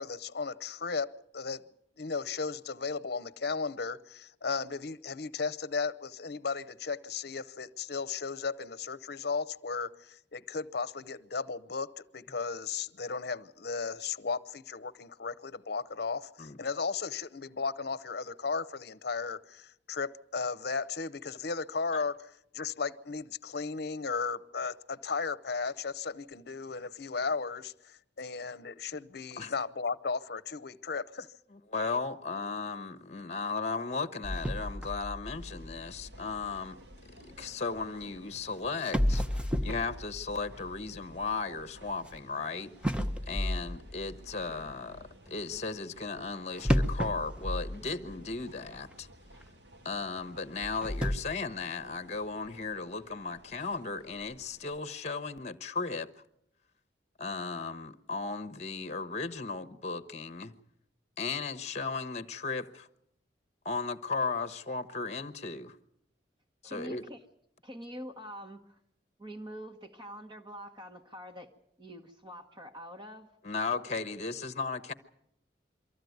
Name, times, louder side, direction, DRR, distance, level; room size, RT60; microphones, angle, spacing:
voice 1, 0.0-1.6 2.0-22.2 22.5-31.3, left 4 dB, 65° left, 0.8 m, -35 dB
voice 2, 31.7-36.8 37.2-39.2 39.6-49.1 49.8-56.1 57.2-60.5 61.2-62.9 63.6-65.8 66.6-67.0 73.4-74.9, left 4 dB, 40° left, 1.0 m, -36 dB
sound 1, 34.2-37.4 38.3-38.4 38.8-42.2 42.8-44.7 46.6-48.4 48.7-48.8 49.4-49.5 50.5-51.2, equal, 5° right, 0.8 m, -33 dB
sound 2, 35.2-54.8, right 1 dB, 70° right, 1.8 m, -56 dB
voice 3, 66.6-67.2 67.6-68.8 69.2-71.5 71.8-73.3 74.0-74.1, equal, 25° right, 1.3 m, -45 dB
24.0 x 14.5 x 9.4 m
head